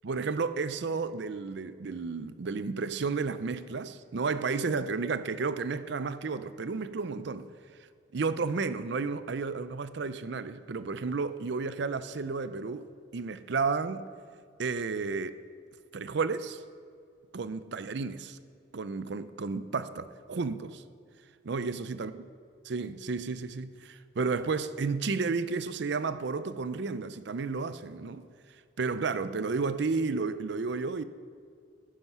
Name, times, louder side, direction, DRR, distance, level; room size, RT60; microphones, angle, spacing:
voice 1, 0.0-7.5 8.1-12.9 13.1-14.1 14.6-15.3 15.9-16.6 17.3-18.4 18.7-20.8 21.4-22.1 22.7-28.2 28.8-31.0, right 4 dB, 60° right, 0.5 m, -32 dB
11.0 x 10.5 x 5.5 m
head